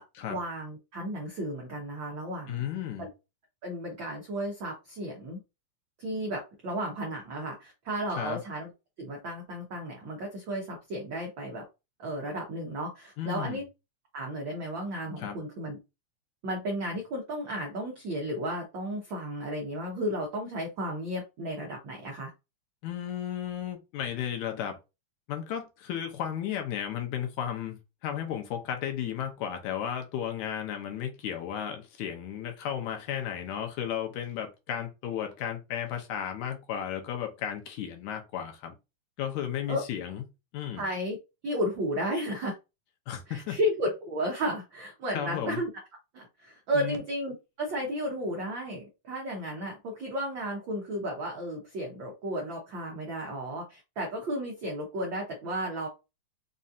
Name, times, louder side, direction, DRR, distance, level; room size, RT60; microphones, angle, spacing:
voice 1, 0.3-2.6 3.0-3.1 3.6-5.4 6.0-8.7 9.0-11.6 12.0-13.6 14.1-15.8 16.4-22.3 39.7-39.8 40.8-41.2 41.4-42.6 43.3-45.7 46.1-55.9, equal, 90° right, 1.0 m, -33 dB
voice 2, 2.5-3.1 8.2-8.4 13.2-13.6 15.2-15.4 22.8-24.8 25.3-38.7 39.2-40.2 40.5-40.9 43.1-43.6 45.1-45.6 46.7-47.0, left 9 dB, 75° left, 2.1 m, -34 dB
5.3 x 2.7 x 2.4 m
omnidirectional pair, 3.5 m